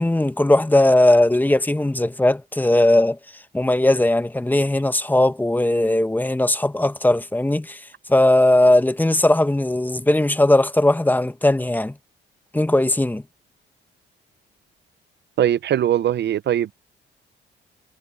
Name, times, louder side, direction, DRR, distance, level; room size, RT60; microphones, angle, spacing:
voice 1, 0.0-3.2 3.5-7.8 8.1-11.9 12.5-13.2, left 1 dB, 10° left, 1.2 m, -18 dB
voice 2, 15.4-16.7, right 11 dB, 60° right, 0.7 m, -20 dB
cardioid pair, 90°, 20 cm